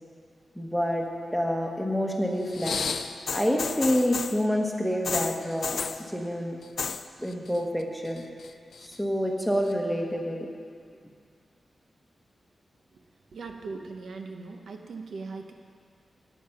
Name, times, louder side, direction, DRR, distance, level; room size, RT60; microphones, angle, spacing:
voice 1, 0.5-1.1 1.3-2.8 3.3-5.8 6.1-6.6 7.2-8.2 8.8-10.5, equal, ahead, 1 dB, 1.2 m, -27 dB
sound 1, 2.5-4.4 5.0-6.0 6.6-7.0 7.3-7.8 8.2-8.9 9.7-9.8, left 5 dB, 60° left, 0.4 m, -32 dB
voice 2, 13.3-15.5, right 4 dB, 70° right, 4 dB, 0.9 m, -39 dB
12.5 x 9.3 x 5.8 m, 2.2 s
wide cardioid pair, 155°, 0 cm